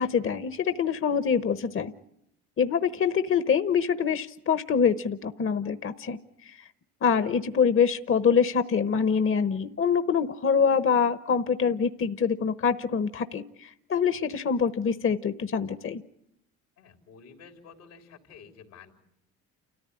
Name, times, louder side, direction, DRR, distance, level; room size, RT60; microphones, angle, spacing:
voice 1, 0.0-1.9 2.6-6.7 7.0-16.0, left 6 dB, 40° left, 12 dB, 1.1 m, -25 dB
voice 2, 16.8-18.9, left 6 dB, 85° left, 5 dB, 3.7 m, -50 dB
29.5 x 14.5 x 9.9 m, 0.78 s
supercardioid pair, 65°, 31 cm